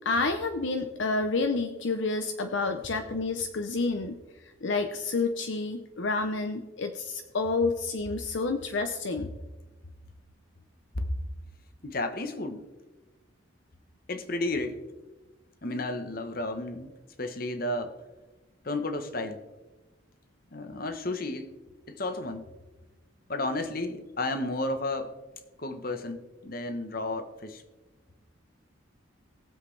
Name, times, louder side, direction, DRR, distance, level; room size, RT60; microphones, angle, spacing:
voice 1, 0.0-9.3, left 3 dB, 70° left, 7 dB, 0.6 m, -29 dB
voice 2, 11.8-12.6 14.1-14.8 15.6-16.9 17.2-18.0 18.6-19.4 20.5-21.5 21.9-22.4 23.3-25.2 25.6-27.6, left 2 dB, 45° left, 8 dB, 1.1 m, -32 dB
20.5 x 7.6 x 3.3 m, 1.2 s
head